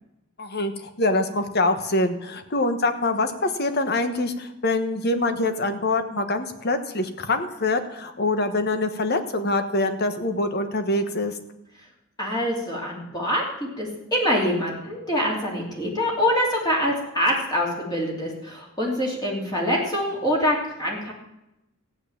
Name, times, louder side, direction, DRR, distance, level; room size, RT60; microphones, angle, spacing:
voice 1, 0.4-11.4, left 2 dB, 50° left, 8 dB, 1.3 m, -24 dB
voice 2, 12.2-21.1, equal, 20° left, -2 dB, 2.9 m, -25 dB
15.0 x 9.2 x 7.3 m, 0.90 s
head